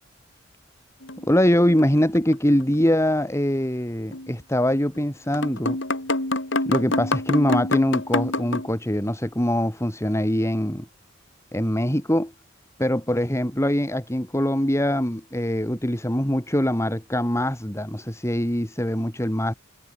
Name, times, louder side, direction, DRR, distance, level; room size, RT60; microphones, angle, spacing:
sound 1, 1.0-2.3 2.6-2.7 4.1-4.3 4.9-5.0 5.3-8.7, left 2 dB, 70° left, 6.0 m, -26 dB
voice 1, 1.2-5.8 6.7-10.9 11.5-12.3 12.8-19.5, equal, 15° left, 3.8 m, -23 dB
head